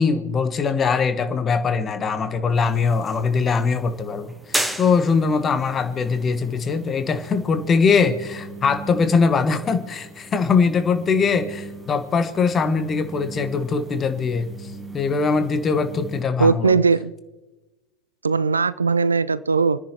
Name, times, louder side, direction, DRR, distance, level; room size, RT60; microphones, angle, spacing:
voice 1, 0.0-14.5 14.9-16.8, left 5 dB, 20° left, 9 dB, 1.3 m, -21 dB
sound 1, 2.5-16.2, right 1 dB, 5° right, 1.1 m, -37 dB
voice 2, 16.4-17.1 18.2-19.8, right 4 dB, 75° right, 17 dB, 0.4 m, -19 dB
29.5 x 10.0 x 2.9 m, 1.1 s
figure-of-eight pair, 90°, 0 cm